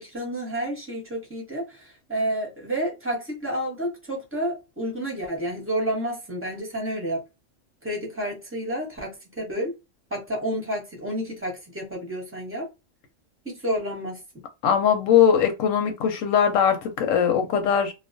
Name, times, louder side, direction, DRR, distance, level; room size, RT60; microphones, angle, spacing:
voice 1, 0.0-7.2 7.8-9.7 10.1-12.7 13.4-14.4, right 1 dB, 10° right, 0.9 m, -30 dB
voice 2, 14.6-17.9, left 8 dB, 85° left, 1.0 m, -20 dB
2.3 x 2.2 x 2.4 m
omnidirectional pair, 1.3 m